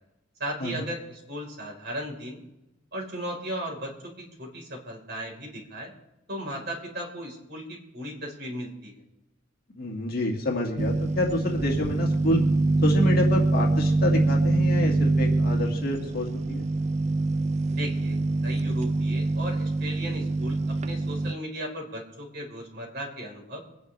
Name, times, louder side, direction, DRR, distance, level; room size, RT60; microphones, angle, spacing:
voice 1, 0.4-2.4 2.9-4.1 4.4-5.9 6.3-9.0 17.7-18.2 18.4-23.6, equal, 55° right, -1 dB, 4.4 m, -36 dB
voice 2, 9.8-12.4 12.8-16.7, left 1 dB, 50° left, -1 dB, 2.1 m, -28 dB
sound 1, 10.8-21.3, right 2 dB, 35° right, 0.4 m, -24 dB
24.5 x 10.0 x 3.4 m, 0.94 s
head